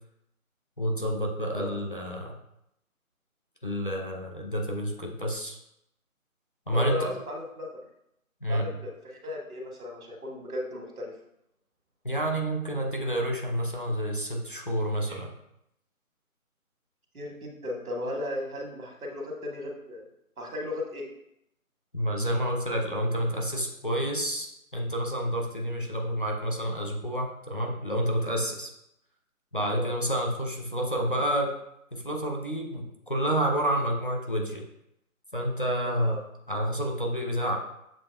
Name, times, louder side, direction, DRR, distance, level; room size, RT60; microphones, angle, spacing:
voice 1, 0.8-2.4 3.6-5.6 6.7-7.1 8.4-8.7 12.0-15.3 21.9-28.7 29.5-31.5 31.9-34.6 35.3-37.6, equal, 40° left, 0 dB, 0.6 m, -29 dB
voice 2, 6.7-7.7 8.5-11.1 17.1-20.1 20.4-21.0 29.7-29.9 35.8-36.2, left 1 dB, 85° right, 1 dB, 1.5 m, -35 dB
7.3 x 2.8 x 2.3 m, 0.80 s
figure-of-eight pair, 175°, 43 cm